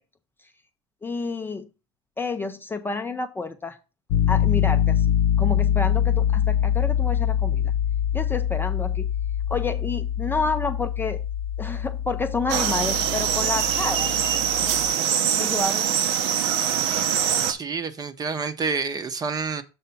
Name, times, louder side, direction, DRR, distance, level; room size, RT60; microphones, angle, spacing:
voice 1, 1.0-1.7 2.2-3.8 4.3-5.1 5.4-7.7 8.1-9.1 9.5-11.2 11.6-14.1 15.4-15.9, left 3 dB, 15° left, 0.5 m, -29 dB
Piano, 4.1-14.9, left 10 dB, 70° left, 0.5 m, -24 dB
sound 1, 12.5-17.5, right 9 dB, 70° right, 0.9 m, -23 dB
voice 2, 17.5-19.6, right 5 dB, 25° right, 0.8 m, -28 dB
6.9 x 3.6 x 5.7 m
supercardioid pair, 105°, 15 cm